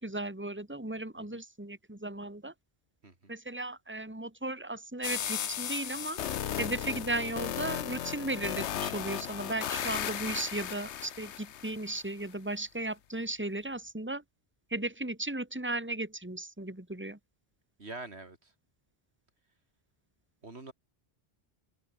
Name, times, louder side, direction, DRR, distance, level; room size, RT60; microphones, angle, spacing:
voice 1, 0.0-2.5 3.3-6.2 6.6-14.2 14.7-17.2, right 2 dB, 10° right, 2.6 m, -36 dB
sound 1, 5.0-12.0, left 10 dB, 85° left, 1.1 m, -36 dB
voice 2, 17.8-18.5 20.4-20.7, right 3 dB, 75° right, 3.5 m, -45 dB
omnidirectional pair, 1.1 m